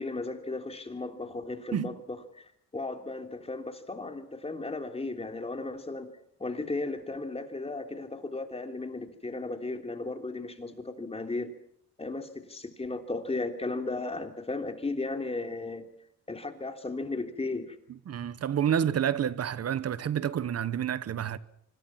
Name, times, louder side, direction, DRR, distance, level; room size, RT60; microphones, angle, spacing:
voice 1, 0.0-6.1 6.4-11.5 12.0-15.9 16.3-17.8, left 3 dB, 20° left, 3.4 m, -35 dB
voice 2, 18.1-21.4, right 9 dB, 55° right, 1.3 m, -29 dB
26.0 x 25.0 x 5.9 m
cardioid pair, 90°, 30 cm